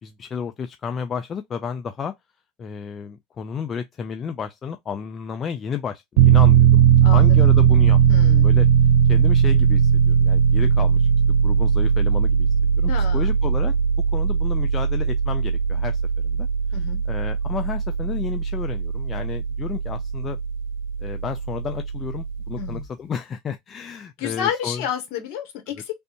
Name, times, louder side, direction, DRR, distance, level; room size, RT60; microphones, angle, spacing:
voice 1, 0.0-2.1 2.6-8.0 8.4-8.7 9.1-11.1 11.4-12.5 12.8-13.7 14.1-16.5 17.1-20.4 21.0-24.8, left 7 dB, 35° left, 0.4 m, -32 dB
Piano, 6.2-22.8, right 7 dB, 75° right, 0.3 m, -19 dB
voice 2, 7.0-7.5 8.1-8.5 12.9-13.3 16.7-17.0 22.6-22.9 24.2-26.0, left 9 dB, 70° left, 1.3 m, -30 dB
3.3 x 2.5 x 2.9 m
supercardioid pair, 100°, 0 cm